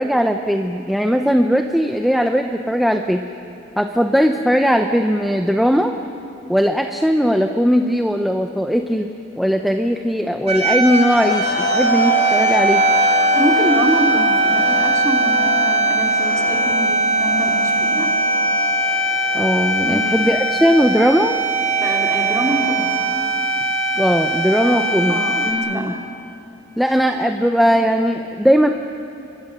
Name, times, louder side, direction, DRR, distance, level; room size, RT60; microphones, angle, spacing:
voice 1, 0.0-3.2 3.8-5.9 6.5-9.1 9.4-12.8 19.3-21.4 24.0-25.2 25.7-25.9 26.8-28.7, equal, ahead, 4 dB, 0.8 m, -18 dB
sound 1, 10.5-25.5, right 2 dB, 40° right, 4.0 m, -19 dB
sound 2, 11.2-23.6, left 4 dB, 40° left, 0.6 m, -29 dB
voice 2, 13.3-18.1 19.8-20.2 21.8-23.0 24.6-25.9, right 1 dB, 15° right, -1 dB, 3.2 m, -25 dB
29.5 x 24.5 x 6.7 m, 2.7 s
head